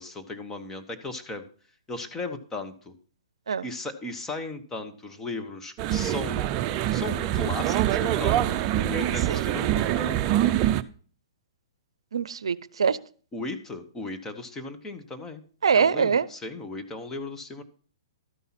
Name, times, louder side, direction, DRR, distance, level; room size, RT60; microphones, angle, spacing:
voice 1, 0.0-1.4 1.9-2.9 3.6-6.4 6.9-10.6 13.3-15.4 15.7-17.6, left 2 dB, 15° left, 7 dB, 1.0 m, -36 dB
sound 1, 5.8-10.8, right 12 dB, 35° right, 0.5 m, -25 dB
voice 2, 12.1-13.0 15.6-16.3, right 6 dB, 80° right, 19 dB, 0.5 m, -23 dB
12.5 x 5.5 x 5.8 m, 0.42 s
hypercardioid pair, 130°, 3 cm